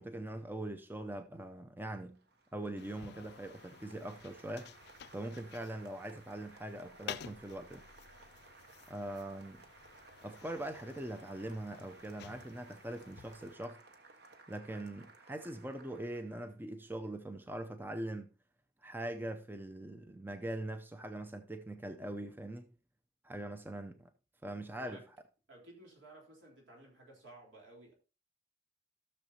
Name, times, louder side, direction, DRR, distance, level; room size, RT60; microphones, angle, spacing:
voice 1, 0.0-2.2 2.5-4.7 5.1-7.9 8.9-9.6 10.2-13.8 14.5-18.3 18.8-22.7 23.2-24.1 24.4-25.0, right 1 dB, 10° right, 0.5 m, -42 dB
Applause, 2.1-16.6, right 3 dB, 55° right, 1.1 m, -59 dB
sound 1, 2.8-13.6, left 8 dB, 55° left, 0.4 m, -52 dB
voice 2, 24.7-25.0 25.5-27.9, right 2 dB, 75° right, 3.6 m, -55 dB
15.5 x 6.5 x 2.8 m
head